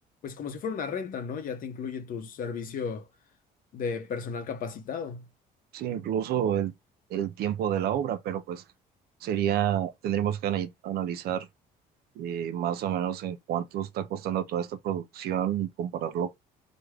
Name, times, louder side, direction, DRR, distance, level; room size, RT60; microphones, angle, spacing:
voice 1, 0.2-3.1 3.7-5.3, left 6 dB, 55° left, 0.7 m, -34 dB
voice 2, 5.7-6.7 7.1-8.6 9.2-11.5 12.2-16.4, right 10 dB, 65° right, 0.4 m, -29 dB
3.5 x 2.1 x 3.2 m
cardioid pair, 110°, 17 cm